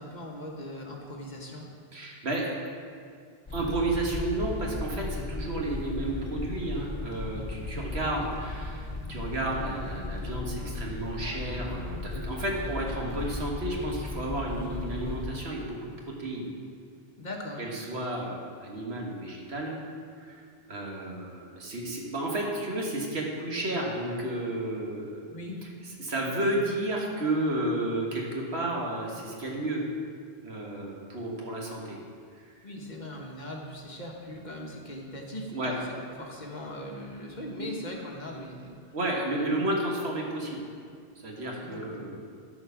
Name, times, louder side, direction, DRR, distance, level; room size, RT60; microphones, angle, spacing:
voice 1, 0.0-1.7 17.2-17.6 25.3-25.6 32.6-38.8 41.6-42.1, left 1 dB, 45° left, 0 dB, 1.3 m, -40 dB
voice 2, 1.9-2.5 3.5-15.9 16.2-16.5 17.6-19.8 20.2-25.2 26.0-29.8 30.4-32.0 35.5-35.7 37.6-37.7 38.9-40.6 41.2-42.2, right 1 dB, 80° right, -2 dB, 1.8 m, -32 dB
sound 1, 3.5-15.3, left 2 dB, 25° left, 1.3 m, -36 dB
13.0 x 4.9 x 5.8 m, 2.2 s
omnidirectional pair, 1.1 m